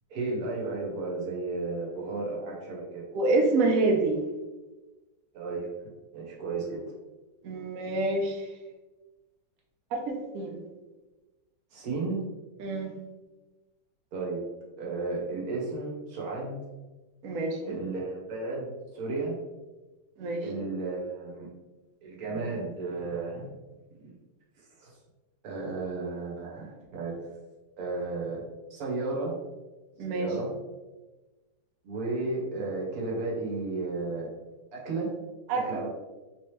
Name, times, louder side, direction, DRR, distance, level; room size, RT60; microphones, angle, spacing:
voice 1, 0.1-3.0 5.3-5.7 6.1-6.9 11.7-12.2 14.1-14.4 14.8-16.6 17.7-19.4 20.4-21.5 22.0-23.5 24.0-24.1 24.8-24.9 25.4-27.3 27.8-28.4 28.7-29.4 30.1-30.5 31.8-34.3 34.7-35.1 35.6-35.9, right 3 dB, 60° right, -3 dB, 1.3 m, -33 dB
voice 2, 3.1-4.2 7.4-8.5 9.9-10.6 12.6-12.9 17.2-17.8 20.2-20.6 30.0-30.3 35.5-35.7, right 2 dB, 80° right, 1 dB, 0.7 m, -27 dB
3.4 x 3.0 x 3.1 m, 1.1 s
omnidirectional pair, 2.1 m